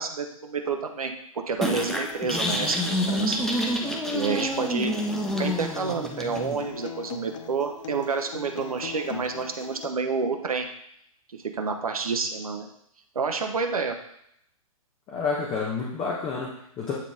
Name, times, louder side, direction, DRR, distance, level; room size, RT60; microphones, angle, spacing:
voice 1, 0.0-2.8 3.1-3.4 4.1-4.9 5.4-10.7 11.3-12.7 13.1-13.9, right 5 dB, 75° right, 5 dB, 0.8 m, -29 dB
sound 1, 1.6-6.6, left 1 dB, ahead, 0.6 m, -28 dB
Acoustic guitar, 1.9-9.9, left 7 dB, 60° left, 0.7 m, -41 dB
voice 2, 15.1-16.9, left 4 dB, 25° left, -3 dB, 1.2 m, -29 dB
8.6 x 3.8 x 3.7 m, 0.73 s
figure-of-eight pair, 115°, 18 cm